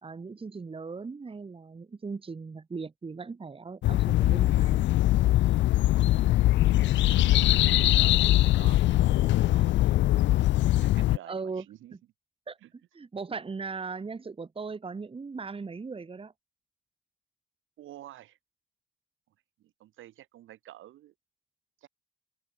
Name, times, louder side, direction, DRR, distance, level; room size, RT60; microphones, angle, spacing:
voice 1, 0.0-4.8 11.3-11.6 12.5-12.6 12.9-16.3, right 4 dB, 25° right, 1.8 m, -38 dB
sound 1, 3.8-11.2, left 15 dB, 70° left, 0.4 m, -22 dB
voice 2, 6.7-10.3 10.6-12.0 12.6-12.7 17.8-18.4 19.3-21.1 21.8-21.9, right 13 dB, 80° right, 6.4 m, -51 dB
cardioid pair, 90°, 20 cm